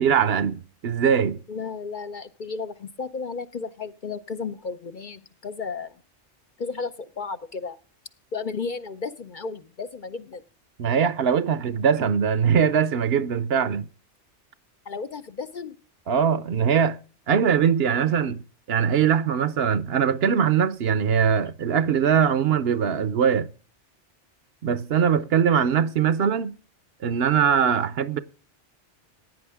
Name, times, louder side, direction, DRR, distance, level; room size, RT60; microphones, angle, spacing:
voice 1, 0.0-1.4 10.8-13.9 16.1-17.0 17.3-18.4 18.7-23.5 24.6-26.6 27.0-28.2, right 7 dB, 65° right, 0.9 m, -21 dB
voice 2, 1.5-6.0 6.6-7.8 8.3-10.4 14.8-15.8, left 4 dB, 50° left, 0.7 m, -33 dB
15.5 x 9.3 x 3.5 m
omnidirectional pair, 1.2 m